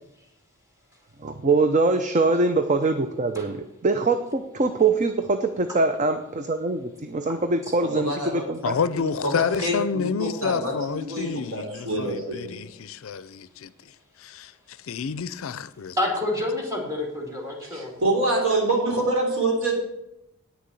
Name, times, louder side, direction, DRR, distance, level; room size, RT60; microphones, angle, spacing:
voice 1, 1.2-8.7, right 3 dB, 35° right, 0.5 m, -23 dB
voice 2, 7.8-8.4 8.8-9.8 10.0-12.6 17.6-19.8, right 2 dB, 65° right, 3.3 m, -26 dB
voice 3, 8.6-16.0, left 6 dB, 70° left, 0.5 m, -29 dB
voice 4, 16.0-17.9, left 1 dB, 15° right, 2.4 m, -28 dB
9.4 x 6.7 x 7.6 m
head